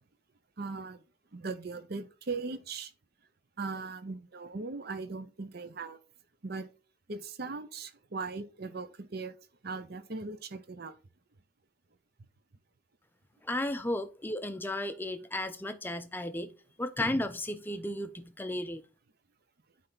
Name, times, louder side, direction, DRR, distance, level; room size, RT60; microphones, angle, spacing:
voice 1, 0.6-1.0 1.3-2.9 3.6-6.0 6.4-6.7 7.1-9.3 9.6-10.9, right 4 dB, 50° right, 0.7 m, -39 dB
voice 2, 13.4-18.8, left 1 dB, 10° left, 0.5 m, -34 dB
9.4 x 3.3 x 4.0 m
head